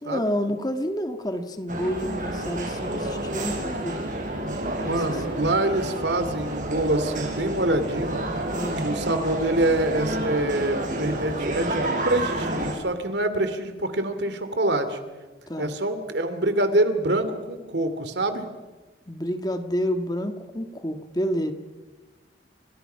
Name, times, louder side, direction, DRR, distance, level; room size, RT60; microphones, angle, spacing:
voice 1, 0.0-4.0 4.8-5.5 8.5-8.8 15.5-15.8 19.1-21.5, equal, 20° left, 7 dB, 1.6 m, -29 dB
sound 1, 1.7-12.7, right 1 dB, 45° right, 5.4 m, -29 dB
voice 2, 4.7-8.2 8.8-15.0 15.6-18.4, right 1 dB, 65° right, 10 dB, 2.8 m, -25 dB
30.0 x 26.5 x 5.7 m, 1.2 s
head